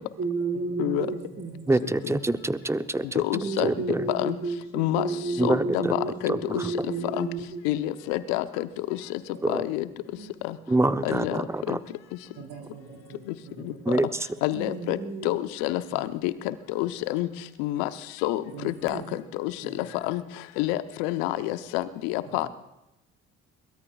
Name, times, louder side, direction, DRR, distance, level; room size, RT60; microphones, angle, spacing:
voice 1, 0.0-1.6 3.3-7.7 10.2-10.3 14.5-15.3 18.9-19.0, right 3 dB, 35° right, -1 dB, 5.6 m, -32 dB
voice 2, 1.0-2.4 9.3-10.1 12.4-13.8 15.9-16.1 18.5-19.1 19.6-19.9, right 6 dB, 65° right, 2 dB, 4.2 m, -46 dB
voice 3, 1.7-3.2 3.6-4.0 5.4-5.9 6.3-6.7 9.4-9.6 10.7-11.8 13.9-14.1, right 2 dB, 5° right, 12 dB, 0.8 m, -26 dB
voice 4, 3.1-3.7 4.1-4.3 4.7-5.1 5.4-6.8 7.2-7.3 7.6-9.2 9.5-9.9 10.4-10.6 11.0-11.8 13.6-13.7 14.4-15.0 15.2-17.3 17.6-17.9 18.2-20.2 20.6-22.5, left 15 dB, 70° left, 11 dB, 1.0 m, -28 dB
22.5 x 21.0 x 2.5 m, 0.92 s
hypercardioid pair, 55°, 39 cm